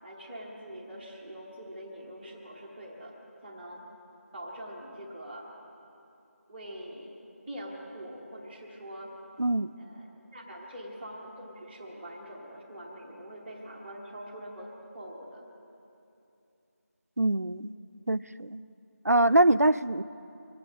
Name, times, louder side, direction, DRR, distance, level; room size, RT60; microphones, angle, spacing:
voice 1, 0.0-3.1 3.4-3.8 4.3-5.5 6.5-7.1 7.5-9.1 9.8-10.1 10.3-14.7 14.9-15.4, equal, 5° right, -6 dB, 1.1 m, -43 dB
voice 2, 9.4-9.7 17.2-17.7 18.1-18.6 19.0-20.0, right 1 dB, 90° right, 14 dB, 0.7 m, -24 dB
25.0 x 8.8 x 5.2 m, 2.7 s
figure-of-eight pair, 175°, 8 cm